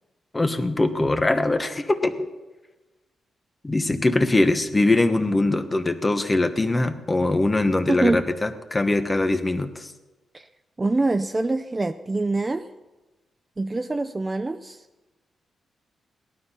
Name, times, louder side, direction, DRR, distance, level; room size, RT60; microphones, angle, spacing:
voice 1, 0.3-2.3 3.6-9.9, left 2 dB, 20° left, 8 dB, 1.2 m, -22 dB
voice 2, 7.9-8.3 10.3-10.5 10.8-12.7 13.6-14.8, right 2 dB, 20° right, 9 dB, 0.5 m, -25 dB
18.5 x 12.5 x 5.7 m, 1.2 s
wide cardioid pair, 140°, 0 cm